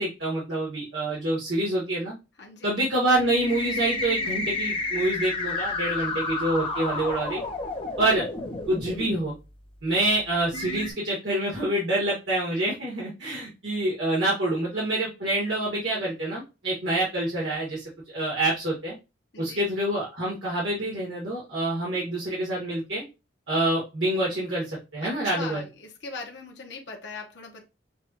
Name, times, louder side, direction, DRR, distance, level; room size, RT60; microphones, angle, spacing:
voice 1, 0.0-2.1 2.6-7.4 8.0-8.2 8.7-9.3 9.8-18.9 19.4-23.0 23.5-25.6, right 1 dB, 70° right, 1.7 m, -27 dB
voice 2, 2.4-2.7 6.0-6.3 19.3-19.7 25.0-27.6, left 3 dB, 65° left, 1.0 m, -40 dB
sound 1, 3.1-9.2 9.9-10.0 10.5-10.9, left 3 dB, 30° left, 0.8 m, -31 dB
6.6 x 2.4 x 2.9 m
head